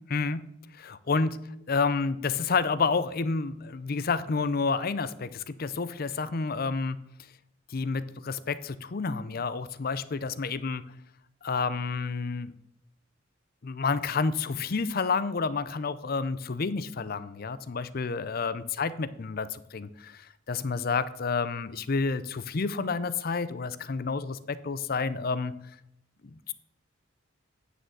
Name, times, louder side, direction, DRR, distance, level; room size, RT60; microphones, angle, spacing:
voice 1, 0.1-0.4 0.7-1.4 1.7-7.0 7.7-10.8 11.4-12.5 13.6-25.5 26.2-26.5, left 4 dB, 45° left, 15 dB, 0.5 m, -29 dB
9.3 x 6.5 x 7.6 m, 0.78 s
head